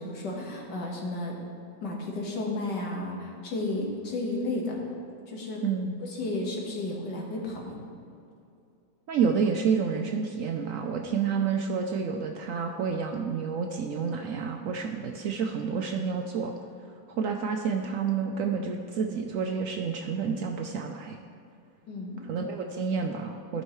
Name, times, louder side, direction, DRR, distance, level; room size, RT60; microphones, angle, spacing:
voice 1, 0.0-1.3 1.8-4.8 5.3-5.6 6.0-7.8 21.9-22.2, left 2 dB, 85° left, -2 dB, 2.0 m, -33 dB
voice 2, 5.6-6.0 9.1-16.5 17.1-21.2 22.2-23.6, right 6 dB, 70° right, 3 dB, 0.8 m, -29 dB
14.5 x 5.5 x 3.1 m, 2.5 s
omnidirectional pair, 1.8 m